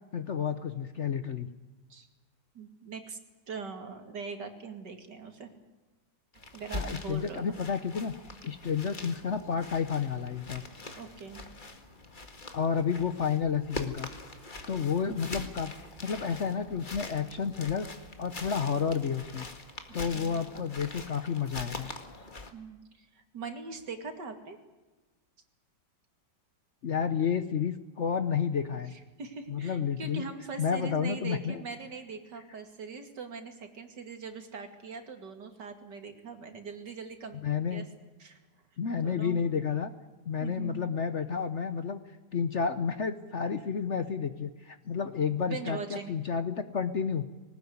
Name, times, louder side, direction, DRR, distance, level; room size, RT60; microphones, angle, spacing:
voice 1, 0.1-1.5 6.7-8.1 8.4-10.6 12.5-14.1 14.7-15.7 16.0-17.9 18.2-19.5 19.9-21.9 26.8-28.9 29.5-30.2 30.6-31.6 37.4-37.8 38.8-39.9 40.2-42.0 42.3-47.3, left 6 dB, 50° left, 11 dB, 1.0 m, -30 dB
voice 2, 2.5-3.2 3.5-5.5 6.5-7.6 10.9-11.5 15.1-15.2 20.1-20.4 22.5-24.6 28.9-37.8 38.2-38.4 39.0-39.4 40.4-40.8 45.5-46.1, right 5 dB, 70° right, 6 dB, 2.9 m, -41 dB
sound 1, 6.3-22.5, left 2 dB, 25° left, 1.9 m, -43 dB
20.0 x 19.5 x 9.5 m, 1.2 s
omnidirectional pair, 1.9 m